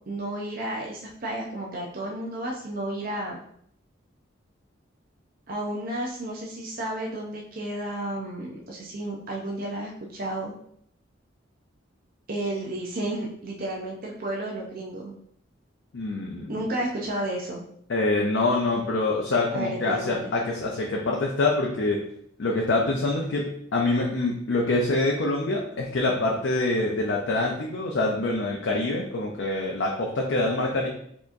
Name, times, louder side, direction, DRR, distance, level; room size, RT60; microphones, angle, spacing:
voice 1, 0.1-3.4 5.5-10.5 12.3-15.1 16.5-17.6 19.5-20.3, right 1 dB, 45° right, -2 dB, 0.6 m, -32 dB
voice 2, 15.9-16.7 17.9-22.0 22.4-30.9, left 2 dB, 65° left, -1 dB, 0.5 m, -25 dB
4.3 x 2.9 x 2.5 m, 0.68 s
head